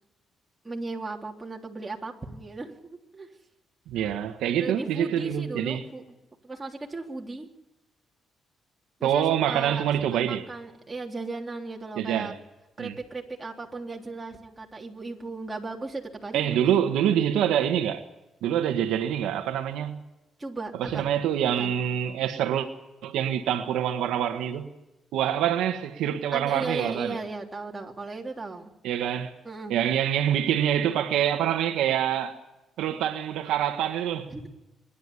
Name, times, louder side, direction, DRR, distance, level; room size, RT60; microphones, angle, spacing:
voice 1, 0.6-3.3 4.6-6.0 6.4-7.5 9.0-9.8 10.1-12.3 12.8-16.8 20.4-21.1 21.6-21.8 26.3-28.7 29.4-29.8 34.3-34.5, right 3 dB, 20° right, 3.5 m, -36 dB
voice 2, 3.9-5.9 9.0-10.4 12.0-12.3 12.8-12.9 16.3-18.0 18.4-20.0 20.8-22.7 23.0-24.7 25.1-27.2 28.8-29.3 29.7-32.4 32.8-34.3, right 10 dB, 90° right, 1.5 m, -26 dB
25.0 x 11.5 x 9.8 m
cardioid pair, 90°, 0 cm